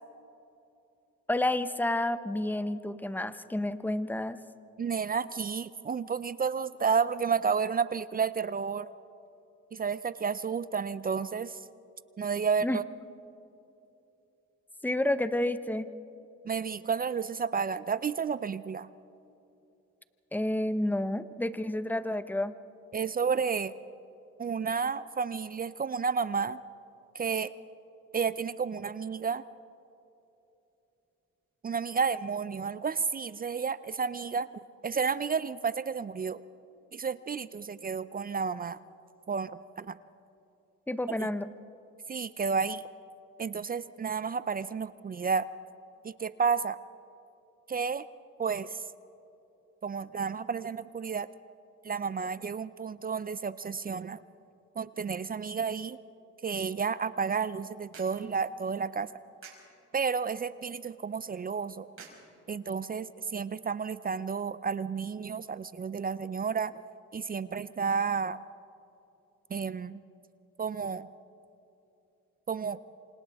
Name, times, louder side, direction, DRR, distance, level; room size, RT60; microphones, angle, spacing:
voice 1, 1.3-4.4 12.6-12.8 14.8-15.9 20.3-22.5 40.9-41.5, left 1 dB, 5° left, 12 dB, 0.8 m, -30 dB
voice 2, 4.8-8.9 9.7-11.6 12.2-12.8 16.4-18.9 22.9-23.7 24.4-26.6 27.1-27.5 28.1-29.4 31.6-34.5 34.8-36.4 36.9-38.8 39.3-39.5 39.8-40.0 42.1-42.8 43.4-45.5 46.0-46.8 47.7-48.0 48.4-48.8 49.8-51.3 51.8-54.2 54.8-56.0 56.4-59.1 59.9-61.9 62.5-66.7 67.1-68.4 69.5-70.0 70.6-71.1 72.5-72.8, right 6 dB, 30° right, 16 dB, 0.5 m, -31 dB
sound 1, 57.0-63.0, right 5 dB, 45° right, 5.2 m, -57 dB
28.0 x 26.0 x 3.5 m, 2.9 s
cardioid pair, 90°, 30 cm